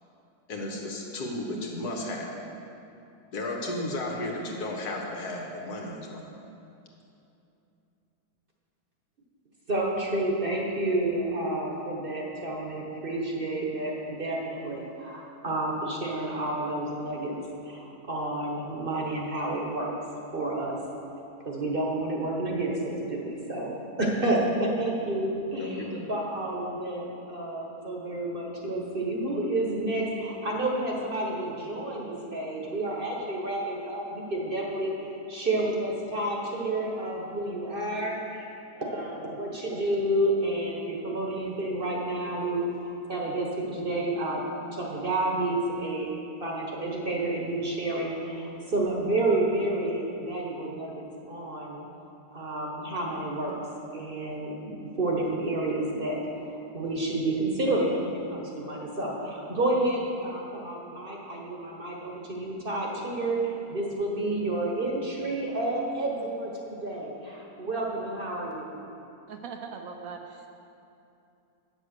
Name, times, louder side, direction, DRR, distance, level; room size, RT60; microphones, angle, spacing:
voice 1, 0.5-2.3 3.3-6.3 25.6-26.0, left 1 dB, 70° left, -1 dB, 1.7 m, -34 dB
voice 2, 9.7-20.0 20.3-20.8 21.4-38.5 38.8-46.1 46.4-51.8 52.3-53.6 53.9-68.7, right 1 dB, 40° right, -1 dB, 1.1 m, -30 dB
voice 3, 69.3-70.5, right 5 dB, 70° right, 4 dB, 0.9 m, -40 dB
8.2 x 6.6 x 6.5 m, 2.8 s
omnidirectional pair, 1.7 m